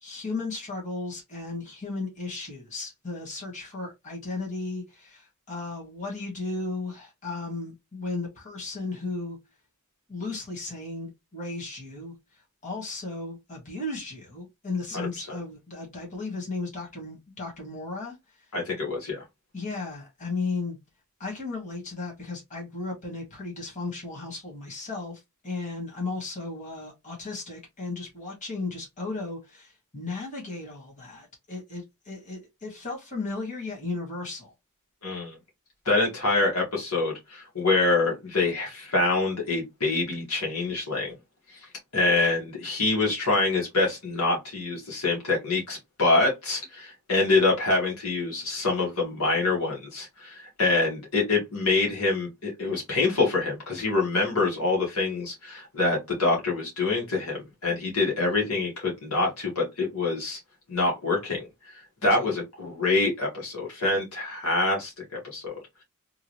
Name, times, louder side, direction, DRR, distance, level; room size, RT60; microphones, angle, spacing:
voice 1, 0.0-9.4 10.1-12.2 12.6-18.2 19.5-20.8 21.2-34.5 62.0-62.3, left 3 dB, 35° left, 2.0 m, -35 dB
voice 2, 14.9-15.3 18.5-19.2 35.0-35.4 35.9-41.1 41.5-41.6 41.9-60.4 60.7-61.5 62.0-65.8, left 3 dB, 70° left, 1.8 m, -26 dB
3.7 x 2.6 x 3.1 m
head